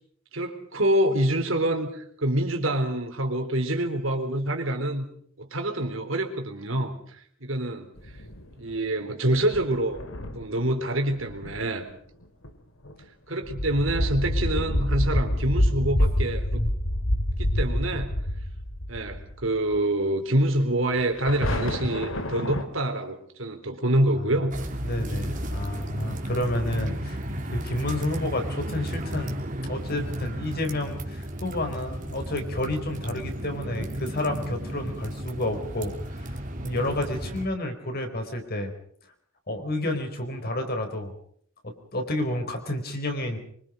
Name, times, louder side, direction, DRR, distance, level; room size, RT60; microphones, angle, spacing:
voice 1, 0.3-5.1 5.4-7.9 8.6-10.0 10.3-11.9 13.3-16.6 17.4-18.1 18.9-24.6, right 1 dB, 70° right, 5 dB, 3.8 m, -26 dB
sound 1, 8.0-8.6 9.4-10.7 11.0-11.6 12.2-12.5 12.8-13.0 13.4-19.5 19.7-19.8 20.9-22.6, left 1 dB, 75° left, 2.6 m, -27 dB
sound 2, 24.5-37.5, right 1 dB, 40° right, 3.2 m, -33 dB
voice 2, 24.8-27.2 27.4-35.9 36.2-36.3 36.6-38.7 39.5-41.1 41.6-43.4, left 1 dB, 50° left, 5 dB, 4.5 m, -30 dB
25.0 x 25.0 x 5.3 m, 0.62 s
head